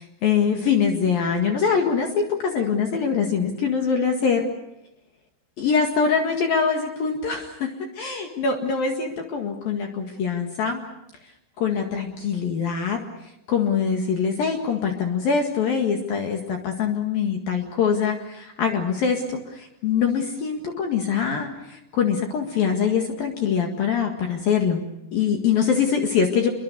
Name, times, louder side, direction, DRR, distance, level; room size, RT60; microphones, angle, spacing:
voice 1, 0.2-4.4 5.6-10.8 11.6-13.0 13.5-24.8 25.1-26.5, left 6 dB, 55° left, 3 dB, 3.3 m, -23 dB
28.0 x 23.5 x 6.9 m, 0.85 s
omnidirectional pair, 5.4 m